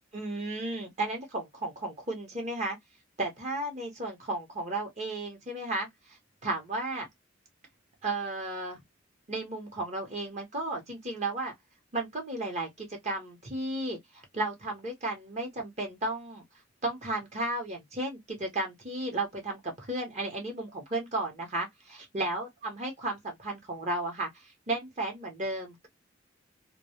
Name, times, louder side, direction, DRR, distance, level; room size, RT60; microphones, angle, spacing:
voice 1, 0.1-2.8 3.2-5.9 6.4-7.1 8.0-8.8 9.3-11.5 11.9-16.4 16.8-21.7 22.1-24.3 24.7-25.9, right 2 dB, 35° right, 0.8 m, -34 dB
2.2 x 2.0 x 2.7 m
head